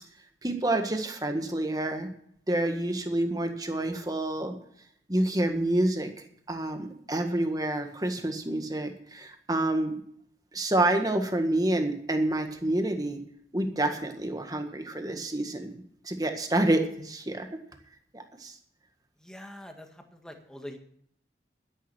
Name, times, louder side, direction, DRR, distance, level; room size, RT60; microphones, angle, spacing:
voice 1, 0.4-2.1 2.5-4.6 5.1-6.1 6.5-9.9 10.5-13.2 13.5-15.7 16.0-17.5 18.1-18.5, right 1 dB, 20° right, 5 dB, 1.7 m, -28 dB
voice 2, 19.2-20.8, left 1 dB, 5° left, 4 dB, 1.7 m, -44 dB
12.0 x 11.0 x 6.2 m, 0.66 s
head